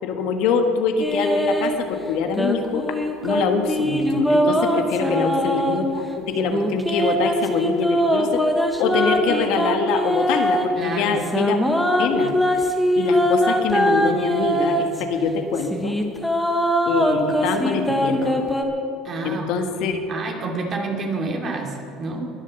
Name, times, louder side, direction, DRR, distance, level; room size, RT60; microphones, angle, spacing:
voice 1, 0.0-2.9 3.2-8.4 8.8-11.6 12.0-12.4 12.9-16.0 16.8-18.4 19.2-20.0, left 5 dB, 70° left, 5 dB, 1.5 m, -24 dB
sound 1, 1.0-1.8 2.3-5.8 6.4-10.7 11.2-15.0 15.6-18.6, equal, 5° left, 1.6 m, -21 dB
voice 2, 5.0-5.5 10.8-11.2 19.0-19.5 19.8-22.2, right 3 dB, 40° right, 1 dB, 2.8 m, -29 dB
21.5 x 7.4 x 6.9 m, 2.7 s
cardioid pair, 115°, 0 cm